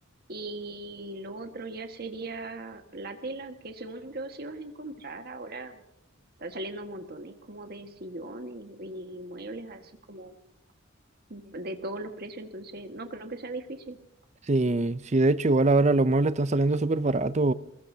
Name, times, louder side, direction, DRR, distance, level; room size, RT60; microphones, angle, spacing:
voice 1, 0.3-5.8 6.4-10.4 11.3-14.0, right 2 dB, 50° right, 1.7 m, -39 dB
voice 2, 14.5-17.5, right 2 dB, 35° right, 0.5 m, -23 dB
23.5 x 20.5 x 2.8 m
head